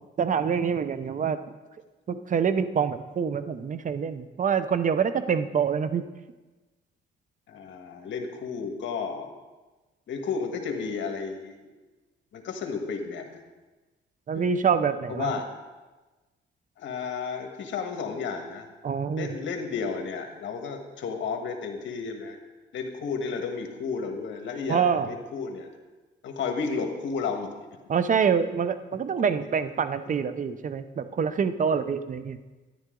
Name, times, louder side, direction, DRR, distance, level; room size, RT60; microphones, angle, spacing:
voice 1, 0.2-1.4 2.1-6.0 14.3-15.3 18.8-19.3 24.7-25.1 27.9-32.4, right 6 dB, 40° right, 12 dB, 0.7 m, -26 dB
voice 2, 7.5-9.3 10.1-11.7 12.3-13.4 14.3-14.5 15.1-15.5 16.8-18.7 19.2-22.4 22.7-25.7 26.2-27.5 30.1-30.2 31.0-31.1, left 5 dB, 70° left, 4 dB, 1.6 m, -32 dB
12.5 x 10.5 x 3.8 m, 1.2 s
cardioid pair, 90°, 20 cm